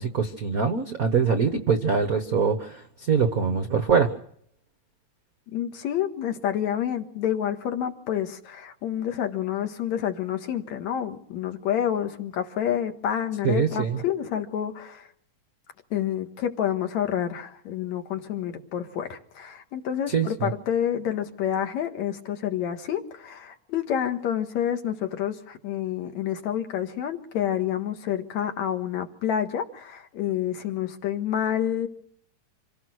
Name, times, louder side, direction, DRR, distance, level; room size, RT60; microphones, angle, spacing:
voice 1, 0.0-4.1 13.4-14.0 20.1-20.5, right 6 dB, 65° right, 8 dB, 0.9 m, -23 dB
voice 2, 5.5-15.1 15.9-31.9, left 10 dB, 70° left, 6 dB, 2.8 m, -28 dB
26.5 x 17.0 x 6.4 m, 0.66 s
omnidirectional pair, 3.5 m